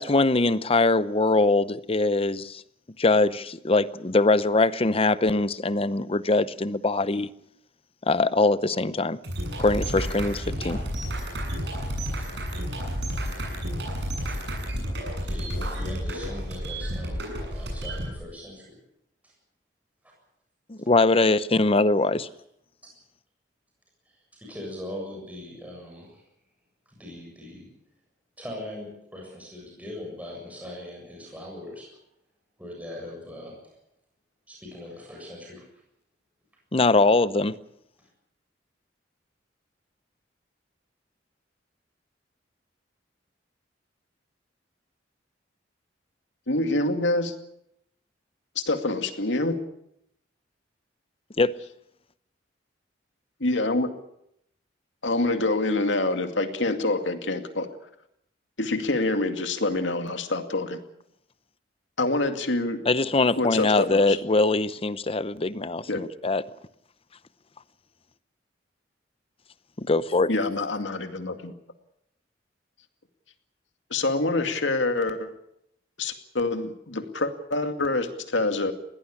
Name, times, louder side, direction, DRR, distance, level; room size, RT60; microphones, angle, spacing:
voice 1, 0.0-2.6 3.0-7.3 8.1-9.2 9.6-10.8 20.7-22.3 36.7-37.5 51.4-51.6 62.9-66.4 69.8-70.3, left 3 dB, 30° left, 0.8 m, -22 dB
sound 1, 9.2-18.1, equal, 65° right, 7.8 m, -31 dB
voice 2, 15.2-18.8 19.2-19.3 22.8-22.9 24.1-26.2 26.9-27.7 28.4-31.9 32.6-33.6 34.5-35.7 38.0-38.1, left 1 dB, 10° right, 7.3 m, -40 dB
voice 3, 46.5-47.3 48.7-49.6 53.4-53.9 55.0-57.7 58.6-60.8 62.0-62.8 63.4-64.2 65.9-66.0 70.3-71.5 73.9-75.3 76.0-78.7, left 2 dB, 80° left, 2.3 m, -26 dB
21.5 x 17.5 x 8.5 m
head